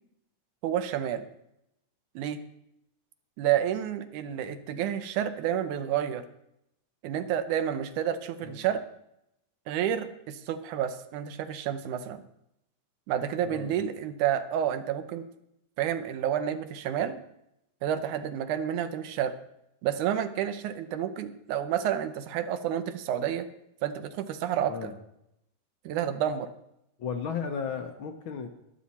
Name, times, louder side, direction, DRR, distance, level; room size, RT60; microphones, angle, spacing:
voice 1, 0.6-1.2 2.2-2.4 3.4-6.2 7.0-8.8 9.7-12.2 13.1-15.3 15.8-17.2 17.8-19.3 19.8-23.5 23.8-24.9 25.9-26.5, right 10 dB, 80° right, 10 dB, 2.3 m, -30 dB
voice 2, 27.0-28.5, left 6 dB, 70° left, 5 dB, 1.2 m, -34 dB
21.5 x 7.4 x 4.2 m, 0.81 s
omnidirectional pair, 3.5 m